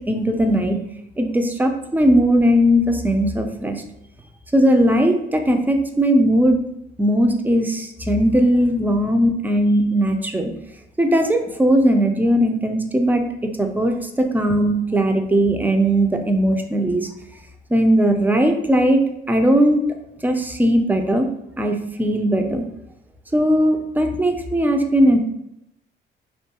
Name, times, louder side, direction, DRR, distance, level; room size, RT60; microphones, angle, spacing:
voice 1, 0.1-0.8 1.2-3.8 4.5-6.6 7.0-10.5 11.0-17.1 17.7-19.0 19.3-19.8 20.2-21.3 21.6-22.6 23.3-25.2, equal, 10° right, 5 dB, 0.3 m, -18 dB
2.6 x 2.2 x 2.8 m, 0.84 s
cardioid pair, 90°, 20 cm